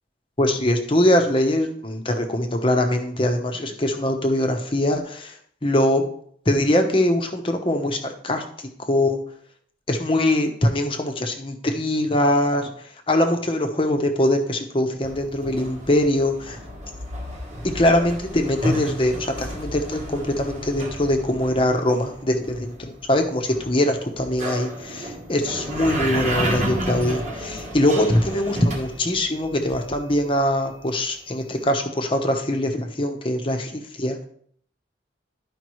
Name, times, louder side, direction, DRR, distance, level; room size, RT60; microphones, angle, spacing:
voice 1, 0.4-5.3 5.6-6.0 6.5-8.4 8.8-9.2 9.9-12.7 13.1-16.6 17.6-34.2, left 1 dB, 30° left, 4 dB, 0.9 m, -22 dB
sound 1, 15.0-30.5, right 1 dB, 40° right, 1.3 m, -32 dB
12.0 x 5.2 x 3.1 m, 0.63 s
head